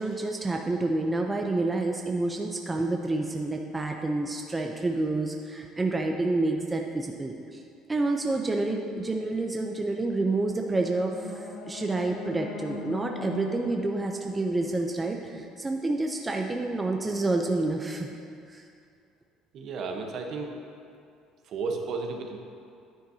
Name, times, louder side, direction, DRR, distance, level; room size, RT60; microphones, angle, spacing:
voice 1, 0.0-7.6 7.9-18.1 18.5-18.6, right 2 dB, 15° right, 2 dB, 0.6 m, -28 dB
sound 1, 10.4-15.5, left 4 dB, 75° left, 0.6 m, -41 dB
voice 2, 19.5-20.5 21.5-22.4, right 4 dB, 55° right, 3 dB, 1.0 m, -33 dB
10.0 x 9.3 x 2.8 m, 2.4 s
supercardioid pair, 95°, 0 cm